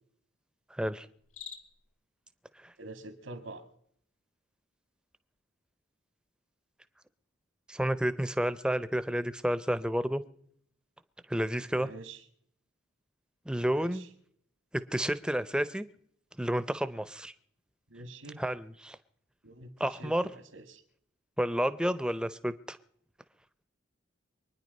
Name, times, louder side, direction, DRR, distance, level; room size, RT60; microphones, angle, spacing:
voice 1, 0.7-1.1 2.6-2.7 7.7-10.2 11.3-11.9 13.5-14.0 14.7-15.9 16.4-17.3 18.4-19.0 19.8-20.3 21.4-22.8, equal, 5° right, 14 dB, 0.5 m, -30 dB
Cricket, 1.2-1.9, left 7 dB, 80° left, 1.7 m, -46 dB
voice 2, 2.8-3.6 11.8-12.2 13.6-14.1 17.9-18.4 19.4-19.7 20.0-20.8, right 2 dB, 80° right, 9 dB, 1.9 m, -46 dB
24.0 x 10.0 x 5.3 m, 0.67 s
head